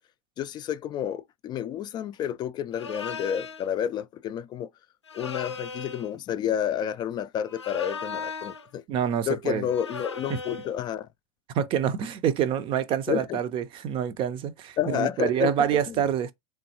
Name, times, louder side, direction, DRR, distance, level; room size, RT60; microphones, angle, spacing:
voice 1, 0.4-4.7 5.1-8.8 9.3-11.1 13.1-13.4 14.8-15.5 15.9-16.0, left 10 dB, 30° left, 0.3 m, -30 dB
sound 1, 2.7-3.7 5.1-6.1 7.5-8.7 9.7-10.7, left 5 dB, 90° left, 0.5 m, -37 dB
voice 2, 8.9-9.7 10.3-10.4 11.5-16.3, right 8 dB, 40° right, 0.5 m, -26 dB
3.6 x 3.1 x 2.8 m
figure-of-eight pair, 85°, 14 cm